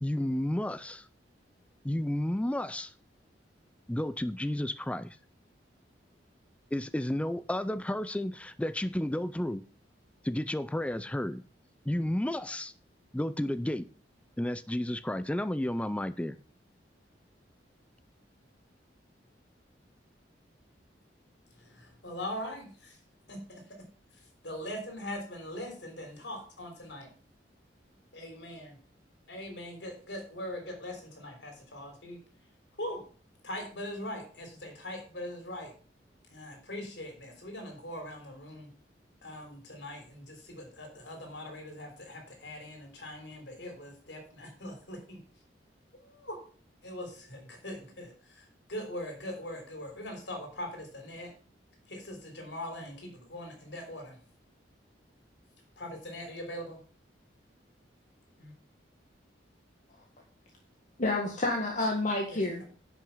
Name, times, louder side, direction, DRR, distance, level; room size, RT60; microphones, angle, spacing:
voice 1, 0.0-1.1 1.8-2.9 3.9-5.2 6.7-9.6 10.2-11.4 11.9-12.7 13.1-13.9 14.4-16.4, left 1 dB, 5° left, 0.3 m, -32 dB
voice 2, 21.5-23.0 23.3-23.8 24.4-27.1 28.1-28.8 29.3-32.2 32.8-33.0 33.4-35.7 36.3-38.7 39.2-45.2 45.9-46.4 46.8-51.3 51.9-54.2 55.8-56.8 58.4-58.5 62.3-62.4, left 1 dB, 70° left, 3.6 m, -41 dB
voice 3, 61.0-62.6, left 2 dB, 45° left, 1.7 m, -29 dB
10.5 x 6.0 x 5.5 m
head